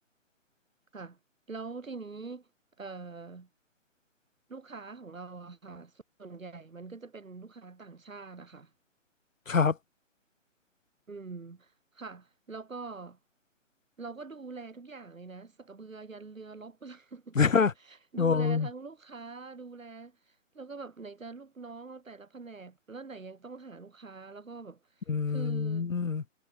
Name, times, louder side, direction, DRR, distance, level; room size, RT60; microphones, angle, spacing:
voice 1, 1.5-2.5 2.8-3.5 4.5-5.9 6.2-8.7 11.1-13.2 14.0-17.4 18.1-24.8 25.3-25.9, right 4 dB, 85° right, 5.5 m, -44 dB
voice 2, 9.5-9.8 17.4-17.7 18.2-18.7 25.1-26.2, left 5 dB, 80° left, 2.2 m, -26 dB
hypercardioid pair, 155°, 39 cm